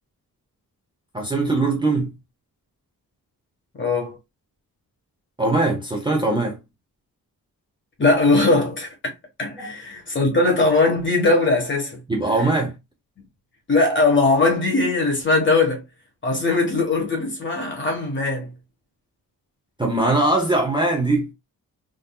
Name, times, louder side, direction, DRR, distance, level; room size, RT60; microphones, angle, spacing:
voice 1, 1.1-2.1 5.4-6.6 9.6-9.7 12.1-12.7 19.8-21.3, right 2 dB, 15° right, 0.7 m, -21 dB
voice 2, 3.8-4.2 8.0-8.9 9.4-12.0 13.7-15.8 16.2-18.5, left 3 dB, 30° left, 1.3 m, -20 dB
3.7 x 2.6 x 2.3 m
wide cardioid pair, 145°, 36 cm